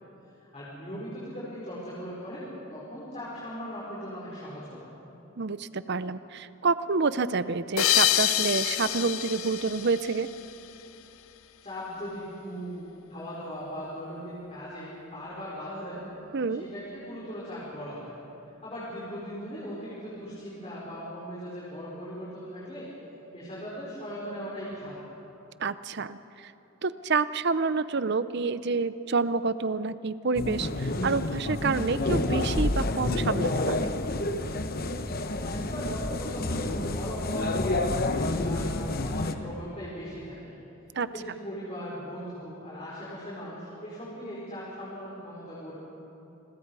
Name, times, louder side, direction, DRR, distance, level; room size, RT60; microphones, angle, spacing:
voice 1, 0.4-4.9 11.6-16.0 16.5-18.1 18.6-22.9 23.3-25.0 35.3-40.5 41.1-45.7, equal, 30° left, -8 dB, 4.9 m, -39 dB
voice 2, 5.4-10.3 16.3-16.6 25.6-26.5 26.8-33.9 40.9-41.1, right 4 dB, 55° right, 14 dB, 0.6 m, -28 dB
sound 1, 7.8-10.8, left 12 dB, 85° left, 0.7 m, -27 dB
sound 2, 30.4-39.3, left 2 dB, 45° left, 1.0 m, -29 dB
28.5 x 22.0 x 4.8 m, 3.0 s
head